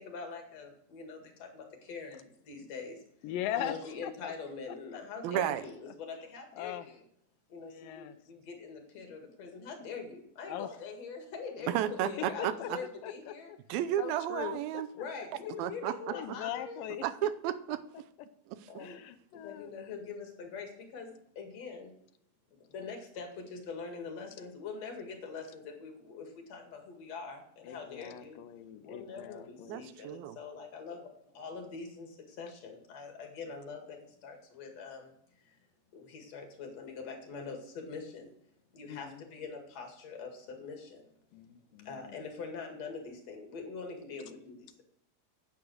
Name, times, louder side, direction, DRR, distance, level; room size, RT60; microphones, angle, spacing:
voice 1, 0.0-3.0 3.5-7.0 7.5-13.5 14.9-16.9 18.7-19.0 19.3-21.9 22.5-28.4 28.8-35.6 35.9-38.3 38.7-41.0 41.8-44.8, left 4 dB, 50° left, 3 dB, 2.7 m, -44 dB
voice 2, 3.2-3.7 4.0-4.3 6.6-6.9 7.7-8.2 10.5-10.7 11.6-11.7 12.4-12.7 13.0-13.3 14.0-14.6 16.1-17.0 18.8-19.7 27.6-29.8 38.9-39.2 41.3-42.2, left 11 dB, 75° left, 12 dB, 2.1 m, -40 dB
voice 3, 5.2-5.6 11.7-12.8 13.7-14.9 15.6-15.9 17.0-18.1 18.5-18.7 29.7-30.4, right 12 dB, 80° right, 11 dB, 2.4 m, -33 dB
9.8 x 8.4 x 6.3 m, 0.71 s
omnidirectional pair, 4.5 m